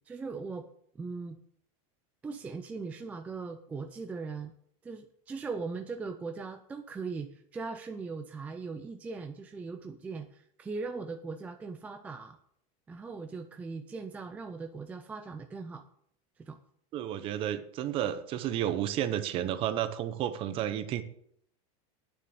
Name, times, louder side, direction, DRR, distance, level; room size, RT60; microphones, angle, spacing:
voice 1, 0.1-0.7 0.9-1.4 2.2-4.5 4.8-12.4 12.9-15.8 16.4-16.6, right 4 dB, 10° right, 6 dB, 0.4 m, -39 dB
voice 2, 16.9-21.0, right 11 dB, 30° right, 11 dB, 0.8 m, -31 dB
9.4 x 6.9 x 6.5 m, 0.68 s
supercardioid pair, 170°, 17 cm